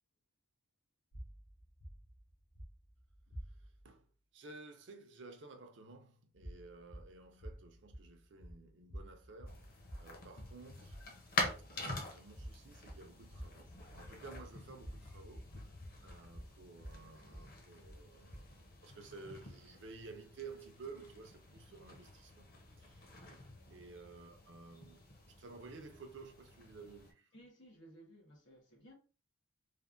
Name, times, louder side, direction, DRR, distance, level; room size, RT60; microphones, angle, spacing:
sound 1, 1.1-3.9 6.3-18.7, equal, 90° left, 0.9 m, -51 dB
voice 1, 3.3-11.0 11.7-22.5 22.8-27.3, right 4 dB, 60° right, 0.5 m, -54 dB
sound 2, 9.5-27.1, left 2 dB, 45° left, 0.7 m, -46 dB
voice 2, 27.3-28.9, right 1 dB, 65° left, 1.2 m, -58 dB
3.3 x 2.1 x 2.5 m
head